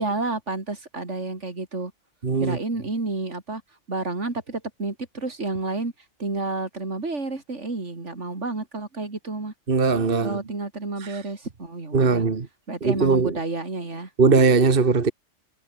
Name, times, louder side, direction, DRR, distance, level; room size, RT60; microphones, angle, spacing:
voice 1, 0.0-1.9 2.4-3.6 3.9-5.9 6.2-9.5 10.2-12.2 12.7-14.1, right 3 dB, 75° right, 3.7 m, -30 dB
voice 2, 2.2-2.6 9.7-10.4 11.9-12.5 12.8-13.3 14.2-15.1, right 4 dB, 50° right, 1.7 m, -19 dB
omnidirectional pair, 1.2 m